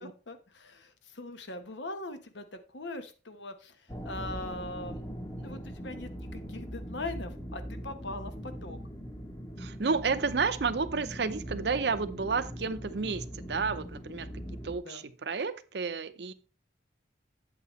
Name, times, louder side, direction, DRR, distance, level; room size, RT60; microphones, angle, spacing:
voice 1, 0.0-5.0 5.4-8.8 14.8-15.1, left 2 dB, 80° left, 9 dB, 1.1 m, -41 dB
sound 1, 3.9-14.8, equal, 20° left, 1.1 m, -41 dB
voice 2, 9.6-14.3 14.6-16.3, right 4 dB, 65° right, 12 dB, 0.6 m, -31 dB
8.4 x 8.0 x 3.1 m, 0.34 s
head